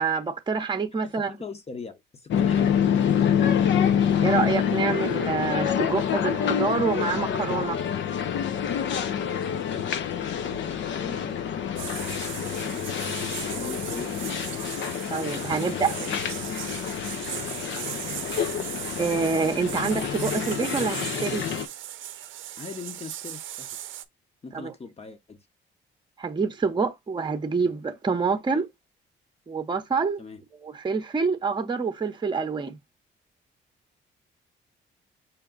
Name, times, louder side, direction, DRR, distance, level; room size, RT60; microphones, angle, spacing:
voice 1, 0.0-1.3 3.8-7.8 15.1-15.9 19.0-21.4 24.5-24.7 26.2-28.7 29.5-30.2 30.6-32.8, right 5 dB, 25° right, 0.8 m, -27 dB
voice 2, 1.0-2.8 9.6-14.2 15.5-16.2 22.6-23.7 24.4-25.4 28.5-28.6 30.2-30.4, left 4 dB, 30° left, 1.0 m, -41 dB
sound 1, 2.3-21.7, left 8 dB, 70° left, 0.7 m, -27 dB
sound 2, 11.8-24.0, right 12 dB, 80° right, 0.6 m, -38 dB
5.8 x 2.3 x 3.8 m
cardioid pair, 90°, 20 cm